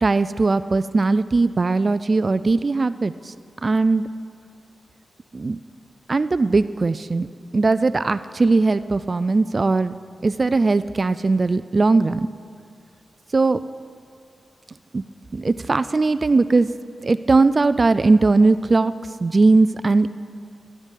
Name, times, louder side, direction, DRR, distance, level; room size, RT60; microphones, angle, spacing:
voice 1, 0.0-3.3 3.6-4.0 5.3-5.6 6.1-7.3 7.5-9.9 10.2-12.3 13.3-13.6 14.9-15.0 15.3-16.7 17.0-18.9 19.2-20.1, right 3 dB, 40° right, 14 dB, 0.3 m, -19 dB
13.5 x 11.5 x 8.3 m, 2.3 s
wide cardioid pair, 85°, 0 cm